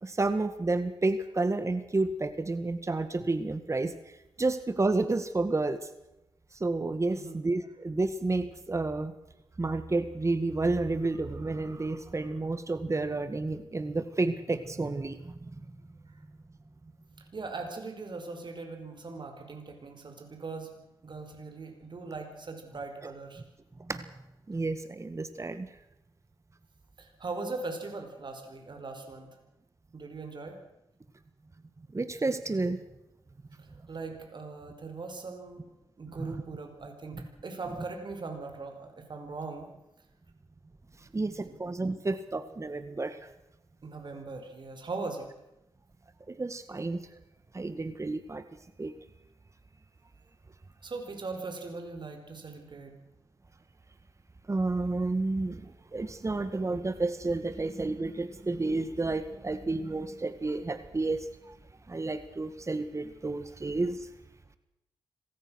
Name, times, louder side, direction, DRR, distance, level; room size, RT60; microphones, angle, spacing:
voice 1, 0.0-3.9 4.4-5.8 6.5-9.1 9.6-15.4 23.9-24.1 24.5-25.7 31.9-32.8 36.2-36.4 41.1-43.3 46.3-47.2 47.5-48.5 48.8-48.9 54.5-61.6 61.9-64.1, right 3 dB, 30° right, 11 dB, 1.8 m, -30 dB
voice 2, 7.1-7.4 17.3-20.7 21.0-23.4 27.0-29.3 29.9-30.6 33.6-35.6 36.0-39.7 41.4-41.6 43.8-45.3 50.8-52.9, right 3 dB, 50° right, 5 dB, 4.9 m, -40 dB
25.5 x 18.0 x 6.4 m, 0.90 s
cardioid pair, 60°, 10 cm